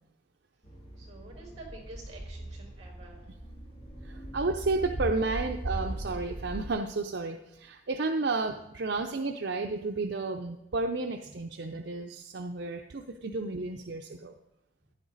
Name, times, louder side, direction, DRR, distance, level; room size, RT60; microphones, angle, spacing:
sound 1, 0.6-6.7, right 1 dB, 30° left, 2.4 m, -39 dB
voice 1, 0.9-3.3 4.1-4.3 11.3-11.4, right 2 dB, 35° right, 1 dB, 5.1 m, -49 dB
voice 2, 4.0-14.3, right 3 dB, 65° right, 4 dB, 0.6 m, -32 dB
15.0 x 10.5 x 4.0 m, 0.89 s
head